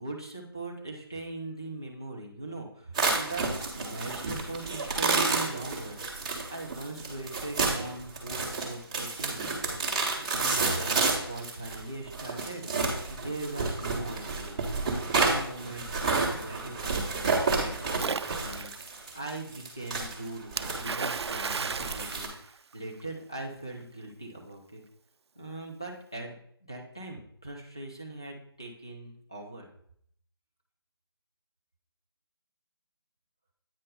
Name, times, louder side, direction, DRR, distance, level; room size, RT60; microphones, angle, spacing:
voice 1, 0.0-3.5 3.8-6.0 6.5-14.6 14.9-18.7 19.1-20.5 20.8-24.8 25.4-29.7, right 2 dB, 10° left, -2 dB, 0.3 m, -40 dB
sound 1, 2.9-22.3, right 3 dB, 15° right, 0.8 m, -30 dB
Splash splatter, 18.0-18.9 20.6-23.0, right 5 dB, 85° right, 0.4 m, -34 dB
8.6 x 3.2 x 5.2 m, 0.67 s
hypercardioid pair, 175°, 13 cm